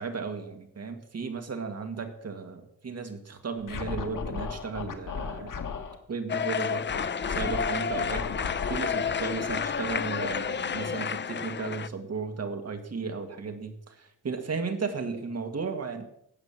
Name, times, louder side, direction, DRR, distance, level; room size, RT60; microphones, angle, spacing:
voice 1, 0.0-5.5 6.1-8.3 8.7-16.1, right 5 dB, 50° right, 6 dB, 1.9 m, -35 dB
Scratching (performance technique), 3.6-6.0 6.9-11.2, left 5 dB, 90° left, 1.6 m, -36 dB
sound 1, 6.3-11.9, left 6 dB, 35° left, 0.5 m, -30 dB
12.5 x 8.2 x 7.4 m, 0.75 s
wide cardioid pair, 145°, 31 cm